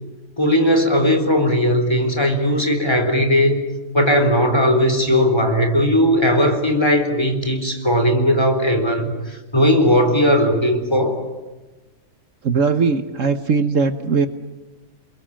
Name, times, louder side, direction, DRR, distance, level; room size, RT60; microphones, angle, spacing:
voice 1, 0.4-3.6 3.9-11.2, equal, 15° left, 4 dB, 4.0 m, -17 dB
voice 2, 12.4-14.3, right 5 dB, 60° right, 9 dB, 1.4 m, -19 dB
29.0 x 22.5 x 8.9 m, 1.2 s
omnidirectional pair, 1.6 m